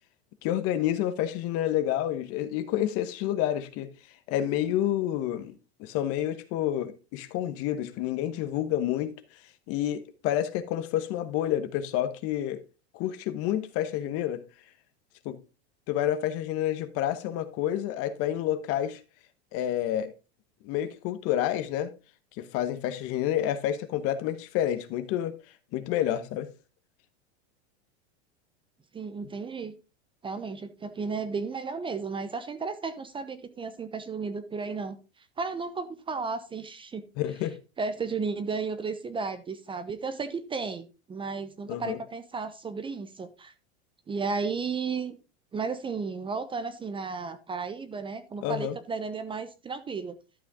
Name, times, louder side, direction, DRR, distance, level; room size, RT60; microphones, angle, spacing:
voice 1, 0.4-3.9 4.3-5.5 5.8-9.1 9.7-12.6 12.9-14.4 15.2-15.4 15.9-19.0 19.5-20.1 20.6-21.9 22.4-25.4 25.7-26.5 37.2-37.6 41.7-42.0 48.4-48.7, left 11 dB, 45° left, 1.1 m, -29 dB
voice 2, 28.9-29.7 30.2-37.0 37.8-43.5 44.1-45.2 45.5-50.2, right 4 dB, 15° right, 0.8 m, -34 dB
12.5 x 5.8 x 3.6 m
supercardioid pair, 130°, 32 cm